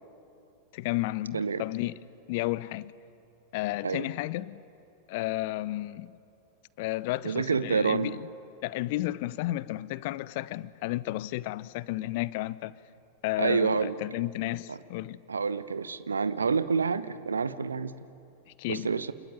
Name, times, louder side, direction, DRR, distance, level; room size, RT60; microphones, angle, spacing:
voice 1, 0.7-1.9 2.3-2.9 3.5-4.6 5.1-6.1 6.8-8.3 8.6-12.8 13.2-15.2 18.5-18.9, left 17 dB, 50° left, 0.7 m, -32 dB
voice 2, 7.2-8.2 13.4-14.0 14.7-14.8 15.3-17.9 18.7-19.1, right 5 dB, 75° right, 0.9 m, -28 dB
28.0 x 20.5 x 9.3 m
figure-of-eight pair, 90°, 0 cm